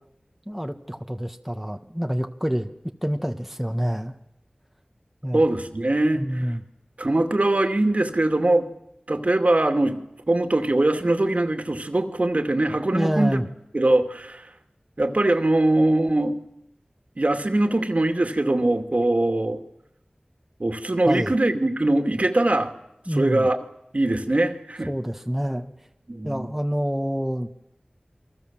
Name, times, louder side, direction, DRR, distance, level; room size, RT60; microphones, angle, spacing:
voice 1, 0.5-2.7 3.0-4.1 5.2-5.4 6.1-6.6 12.9-13.5 21.0-21.3 23.1-23.5 24.9-25.7 26.2-27.5, equal, 5° right, 4 dB, 1.7 m, -27 dB
voice 2, 5.3-6.2 7.0-8.7 9.1-13.4 13.7-14.5 15.0-16.3 17.2-19.6 20.6-22.7 23.1-23.6 23.9-24.9 26.1-26.5, right 2 dB, 55° right, 6 dB, 2.5 m, -22 dB
28.5 x 23.0 x 7.6 m, 0.84 s
wide cardioid pair, 55°, 3 cm